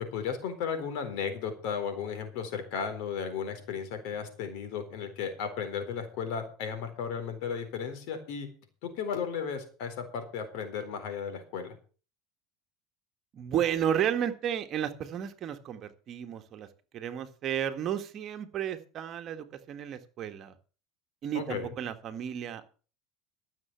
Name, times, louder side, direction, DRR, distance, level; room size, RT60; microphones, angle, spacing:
voice 1, 0.0-8.5 8.8-11.7 21.3-21.7, left 6 dB, 65° left, 7 dB, 4.1 m, -35 dB
voice 2, 13.3-16.7 16.9-20.5 21.2-22.7, right 9 dB, 40° right, 8 dB, 1.7 m, -32 dB
14.0 x 7.2 x 7.0 m, 0.38 s
supercardioid pair, 120°, 0 cm